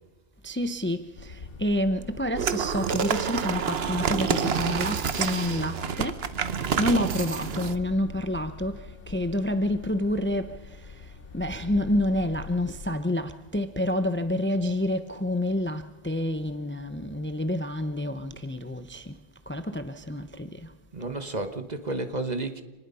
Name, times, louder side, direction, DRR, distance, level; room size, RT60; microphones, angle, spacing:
voice 1, 0.4-1.3 1.6-6.2 6.8-8.8 9.1-10.5 11.3-19.2 19.5-20.5, left 1 dB, 10° left, 0.8 m, -28 dB
sound 1, 1.2-12.9, left 5 dB, 60° left, 1.2 m, -44 dB
sound 2, 2.4-7.7, right 7 dB, 65° right, 1.2 m, -28 dB
voice 2, 20.9-22.6, right 2 dB, 40° right, 1.6 m, -31 dB
27.0 x 20.0 x 5.6 m
omnidirectional pair, 1.1 m